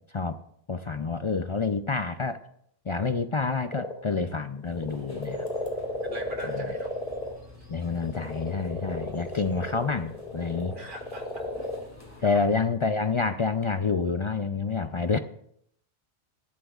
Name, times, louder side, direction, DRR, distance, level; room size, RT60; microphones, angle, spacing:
voice 1, 0.7-2.4 2.9-5.5 6.5-6.7 7.7-10.7 12.2-15.2, left 4 dB, 40° left, 8 dB, 0.4 m, -28 dB
sound 1, 3.7-4.3 4.6-7.3 7.9-11.8, left 1 dB, 60° left, 2.3 m, -33 dB
sound 2, 4.6-12.3, left 2 dB, 15° left, 2.5 m, -49 dB
voice 2, 6.0-6.9 10.7-11.5 12.2-12.4, right 1 dB, 50° right, 3 dB, 1.6 m, -43 dB
21.0 x 11.5 x 2.4 m, 0.70 s
omnidirectional pair, 1.1 m